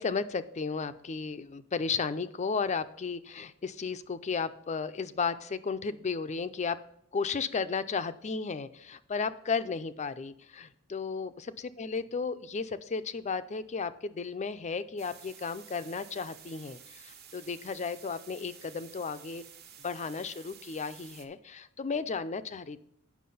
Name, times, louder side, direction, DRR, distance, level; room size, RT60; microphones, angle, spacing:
voice 1, 0.0-6.8 7.1-19.4 19.8-22.8, left 5 dB, 30° left, 13 dB, 0.4 m, -34 dB
sound 1, 15.0-21.3, right 8 dB, 45° right, 1.0 m, -52 dB
9.4 x 6.0 x 5.5 m, 0.74 s
head